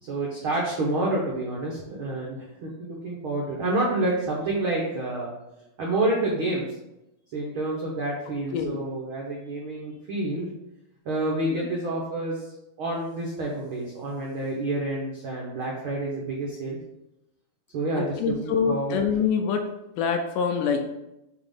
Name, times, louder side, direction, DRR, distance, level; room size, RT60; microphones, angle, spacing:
voice 1, 0.0-5.3 5.8-6.7 7.3-10.5 11.0-16.8 17.7-19.0, right 2 dB, 85° right, -3 dB, 1.1 m, -28 dB
voice 2, 18.0-19.7 20.0-20.8, left 6 dB, 80° left, 5 dB, 2.0 m, -25 dB
6.9 x 3.0 x 5.6 m, 0.88 s
omnidirectional pair, 4.0 m